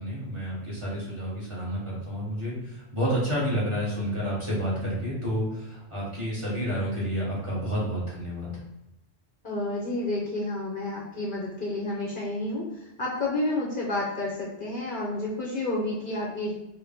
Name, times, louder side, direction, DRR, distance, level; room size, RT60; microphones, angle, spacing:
voice 1, 0.0-8.5, equal, 25° right, -7 dB, 1.3 m, -30 dB
voice 2, 9.4-12.6 13.0-16.5, left 2 dB, 50° left, -5 dB, 0.9 m, -30 dB
4.5 x 2.2 x 3.5 m, 0.93 s
omnidirectional pair, 1.2 m